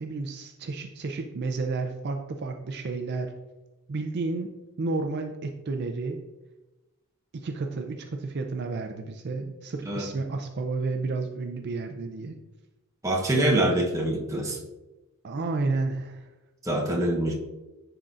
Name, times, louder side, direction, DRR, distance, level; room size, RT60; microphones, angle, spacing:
voice 1, 0.0-3.3 3.9-4.5 4.8-6.2 7.3-12.3 15.2-16.3, right 3 dB, 50° right, 5 dB, 0.4 m, -31 dB
voice 2, 13.0-14.6 16.6-17.3, right 1 dB, 15° right, 0 dB, 0.8 m, -25 dB
10.0 x 3.9 x 2.4 m, 1.1 s
head